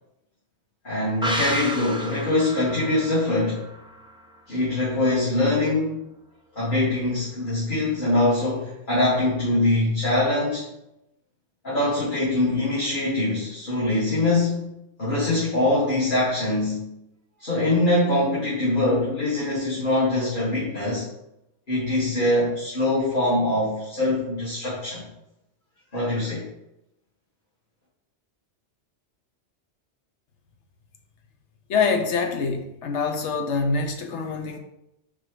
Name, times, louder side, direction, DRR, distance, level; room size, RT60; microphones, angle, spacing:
voice 1, 0.8-3.6 4.5-6.0 6.6-10.6 11.6-14.7 15.0-16.9 17.4-21.1 21.7-25.1 25.9-26.5, left 2 dB, 45° left, -9 dB, 1.9 m, -23 dB
sound 1, 1.2-4.7 5.0-5.1, equal, 5° right, 0.4 m, -32 dB
voice 2, 31.7-34.6, left 4 dB, 85° left, 4 dB, 1.1 m, -25 dB
4.6 x 4.3 x 4.7 m, 0.86 s
omnidirectional pair, 1.2 m